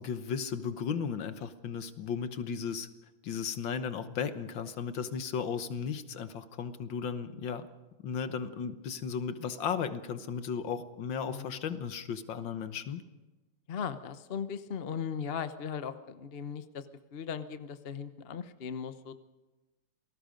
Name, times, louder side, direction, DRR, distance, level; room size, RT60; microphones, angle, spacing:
voice 1, 0.0-2.9 3.2-7.7 8.0-13.0, left 6 dB, 65° left, 11 dB, 1.7 m, -35 dB
voice 2, 11.2-11.6 13.7-19.2, left 7 dB, 45° left, 11 dB, 0.8 m, -38 dB
28.0 x 19.0 x 5.2 m, 1.1 s
omnidirectional pair, 2.3 m